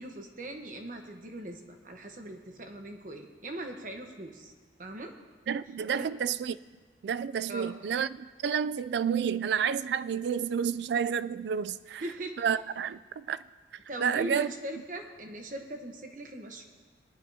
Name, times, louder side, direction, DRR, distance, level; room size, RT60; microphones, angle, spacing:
voice 1, 0.0-4.5 4.8-5.1 5.9-6.1 7.5-7.7 12.0-12.4 13.9-16.6, right 1 dB, 50° right, 1.1 m, -40 dB
voice 2, 5.5-6.6 7.0-12.0 12.4-13.4 14.0-14.5, right 7 dB, 70° right, 0.3 m, -30 dB
20.0 x 11.0 x 2.8 m
head